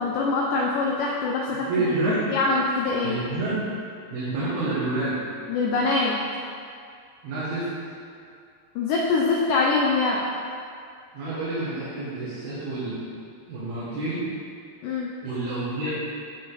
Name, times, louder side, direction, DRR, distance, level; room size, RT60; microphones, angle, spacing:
voice 1, 0.0-1.8 2.3-3.2 5.5-6.2 8.8-10.2 14.8-15.1, left 3 dB, 85° left, -3 dB, 1.9 m, -24 dB
voice 2, 1.7-2.2 3.0-3.6 4.1-5.2 7.2-7.7 11.1-13.0 13.5-14.2 15.2-15.9, right 2 dB, 75° right, -11 dB, 3.4 m, -28 dB
9.5 x 5.1 x 3.9 m, 2.3 s
omnidirectional pair, 4.6 m